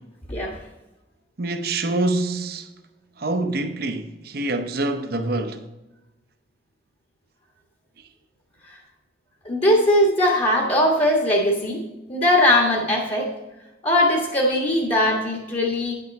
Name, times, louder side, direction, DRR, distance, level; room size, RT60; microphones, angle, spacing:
voice 1, 1.4-2.7 3.2-5.6, right 2 dB, 55° right, 0.7 m, -25 dB
voice 2, 9.4-11.8 12.1-13.3 13.8-15.9, left 1 dB, 30° left, 1.3 m, -20 dB
9.2 x 6.0 x 4.1 m
head